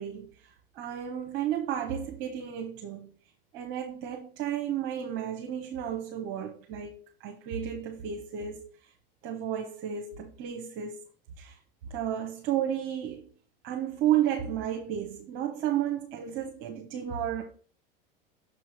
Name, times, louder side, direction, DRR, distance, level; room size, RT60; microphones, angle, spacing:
voice 1, 0.0-3.1 3.5-8.7 9.2-11.0 11.4-11.6 11.9-13.3 13.6-17.4, right 10 dB, 50° right, 1.1 m, -32 dB
6.6 x 4.3 x 4.8 m
figure-of-eight pair, 80°, 29 cm